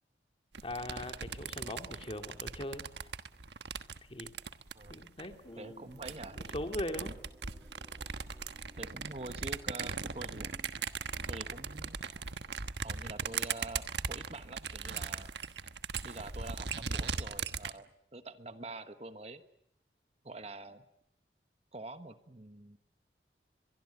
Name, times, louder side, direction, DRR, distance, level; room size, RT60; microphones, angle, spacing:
sound 1, 0.5-5.3 5.9-17.7, right 5 dB, 80° right, 1.3 m, -39 dB
voice 1, 0.6-2.9 4.1-4.3 4.9-6.0 6.3-7.2, left 1 dB, 30° left, 6 dB, 2.4 m, -40 dB
voice 2, 4.7-5.1 5.6-6.4 8.8-10.6 11.3-12.0 12.8-15.3 16.0-19.4 20.2-20.8 21.7-22.8, right 2 dB, 35° right, 10 dB, 1.3 m, -46 dB
sound 2, 5.4-13.3 13.5-13.8, equal, 10° right, 6.8 m, -61 dB
23.5 x 23.0 x 8.2 m, 0.76 s
head